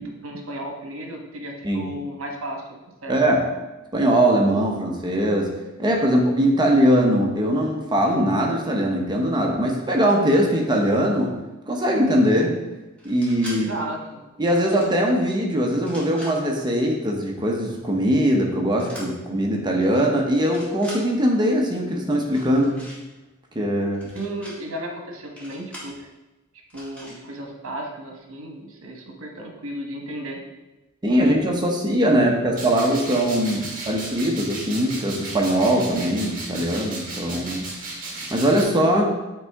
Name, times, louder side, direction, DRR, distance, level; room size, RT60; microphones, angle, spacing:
voice 1, 0.0-2.6 3.0-3.1 13.5-14.2 24.1-26.1 26.7-30.4, right 1 dB, 75° right, 2 dB, 1.1 m, -34 dB
voice 2, 3.1-3.4 3.9-5.5 5.8-11.3 11.7-12.5 13.0-13.7 14.4-22.8 23.5-24.1 31.0-37.7 38.3-39.1, equal, 20° right, 0 dB, 0.8 m, -21 dB
sound 1, 13.0-13.6 14.4-15.0 15.7-16.3 18.8-19.0 19.8-20.0 20.3-21.0 22.2-23.0 23.9-24.5 25.4-25.9 26.7-27.2, equal, 5° left, 1.7 m, -41 dB
sound 2, 32.5-38.6, right 2 dB, 45° right, 1.4 m, -35 dB
8.0 x 3.6 x 3.4 m, 1.1 s
head